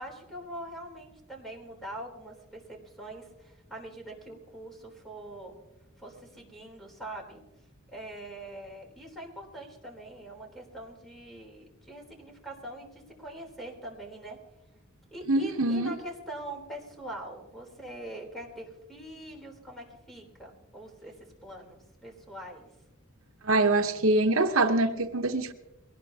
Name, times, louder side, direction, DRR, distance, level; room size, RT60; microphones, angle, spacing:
voice 1, 0.0-5.5 6.0-7.4 7.9-14.4 15.1-21.2 21.4-22.7, right 1 dB, ahead, 3.5 m, -43 dB
voice 2, 15.3-15.9 23.4-25.5, right 2 dB, 70° right, 0.9 m, -24 dB
22.0 x 18.5 x 2.8 m
head